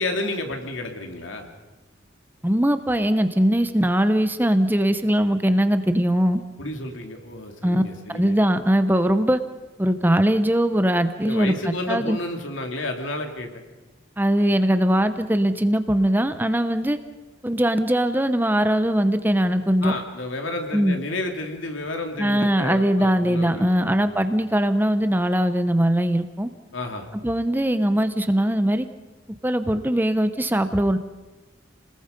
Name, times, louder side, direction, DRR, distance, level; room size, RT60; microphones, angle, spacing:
voice 1, 0.0-1.5 6.6-8.4 11.2-13.5 19.8-24.2 26.7-27.1, left 2 dB, 85° left, 4 dB, 2.9 m, -31 dB
voice 2, 2.4-6.4 7.6-7.8 8.1-9.4 9.8-12.2 14.2-17.0 17.4-19.9 20.7-21.0 22.2-26.5 27.2-28.9 29.4-31.0, equal, 10° right, 10 dB, 0.8 m, -21 dB
29.5 x 20.0 x 5.3 m, 1.1 s
head